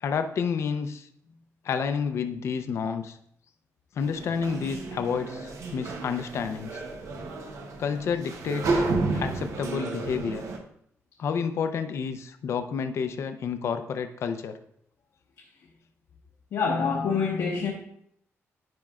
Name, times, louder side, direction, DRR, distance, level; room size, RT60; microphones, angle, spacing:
voice 1, 0.0-1.1 1.6-3.2 3.9-6.8 7.8-8.8 9.1-10.4 11.2-14.5, left 6 dB, 60° left, 0.5 m, -30 dB
sound 1, 4.0-10.6, right 3 dB, 70° right, 0.9 m, -32 dB
voice 2, 16.5-17.7, left 5 dB, 80° left, 1.0 m, -26 dB
10.5 x 5.2 x 2.4 m
wide cardioid pair, 175°, 5 cm